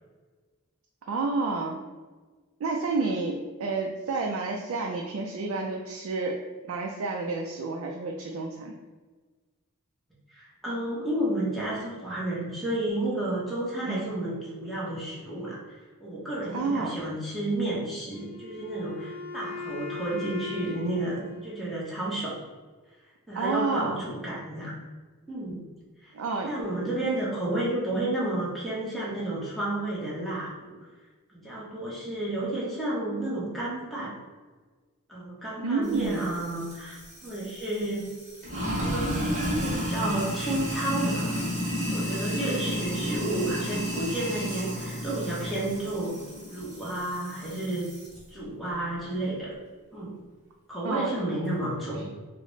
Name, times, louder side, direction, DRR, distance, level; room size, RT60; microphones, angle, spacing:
voice 1, 1.1-1.8 2.6-6.4 6.7-8.7 13.8-14.1 16.5-17.0 23.4-24.0 26.1-26.5 35.6-36.3 50.8-51.1, right 3 dB, 65° right, 1 dB, 0.3 m, -29 dB
voice 2, 10.3-15.6 16.0-22.4 23.3-24.7 25.3-25.6 26.0-26.1 26.5-30.8 31.3-34.2 35.1-38.1 38.7-41.4 41.9-46.2 46.5-47.9 48.3-49.5 49.9-50.1 50.7-52.1, right 1 dB, ahead, -7 dB, 0.8 m, -31 dB
Wind instrument woodwind instrument, 18.1-22.2, left 4 dB, 85° left, 0.6 m, -40 dB
Sink (filling or washing), 35.9-48.2, equal, 35° right, 1.4 m, -32 dB
4.0 x 2.0 x 3.1 m, 1.3 s
head